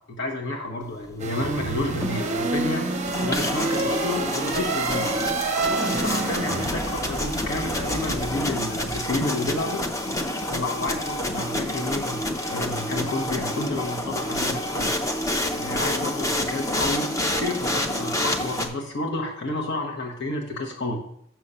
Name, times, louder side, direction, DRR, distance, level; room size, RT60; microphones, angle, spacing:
voice 1, 0.1-2.8 3.2-5.1 5.8-9.8 10.5-12.2 12.5-14.9 15.5-17.1 17.3-21.0, left 2 dB, 55° left, 0 dB, 1.3 m, -30 dB
sound 1, 1.2-9.0, right 3 dB, 35° right, 0.7 m, -28 dB
sound 2, 1.8-18.7, left 1 dB, 15° left, 0.6 m, -28 dB
6.6 x 6.3 x 5.5 m, 0.71 s
head